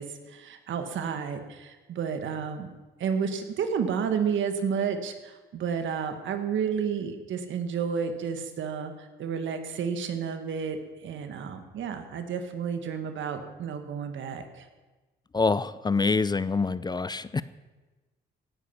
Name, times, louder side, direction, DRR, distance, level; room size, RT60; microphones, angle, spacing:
voice 1, 0.0-2.7 3.0-10.8 11.0-14.7, right 6 dB, 75° right, 7 dB, 1.7 m, -31 dB
voice 2, 15.3-17.4, left 4 dB, 20° left, 16 dB, 0.5 m, -26 dB
17.0 x 10.0 x 5.9 m, 1.2 s
cardioid pair, 90°, 20 cm